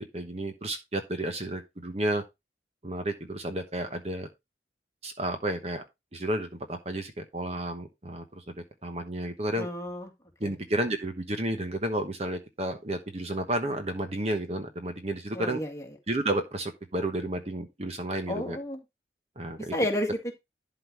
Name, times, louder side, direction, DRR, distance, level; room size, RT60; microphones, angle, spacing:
voice 1, 0.0-2.2 2.8-4.3 5.0-5.8 6.1-8.4 8.8-9.7 10.4-15.6 16.1-18.6 19.4-19.7, right 1 dB, 35° right, 1.1 m, -31 dB
voice 2, 9.6-10.1 10.4-10.6 15.3-15.9 18.3-18.8 19.7-20.3, left 1 dB, 15° left, 2.0 m, -31 dB
11.5 x 3.9 x 4.6 m
head